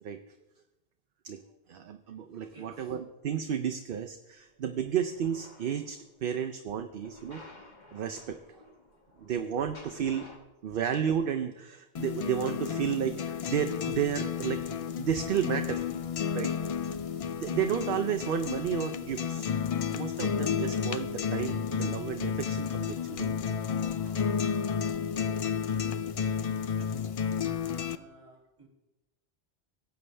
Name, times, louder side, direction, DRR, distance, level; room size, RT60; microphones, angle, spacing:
voice 1, 1.7-7.4 7.9-8.4 9.2-10.3 10.6-14.6 15.0-15.9 16.3-16.5 16.8-16.9 17.4-19.5 19.9-23.3 24.0-24.1, right 8 dB, 60° right, 7 dB, 0.7 m, -32 dB
voice 2, 2.5-3.0 25.6-26.4 26.8-27.4 27.8-28.7, right 1 dB, 30° right, 1 dB, 2.1 m, -57 dB
sound 1, 4.8-6.1 7.0-10.4, left 2 dB, 45° left, 1.6 m, -52 dB
sound 2, 12.0-28.0, left 7 dB, 60° left, 0.3 m, -32 dB
17.5 x 7.9 x 3.3 m, 0.97 s
omnidirectional pair, 1.1 m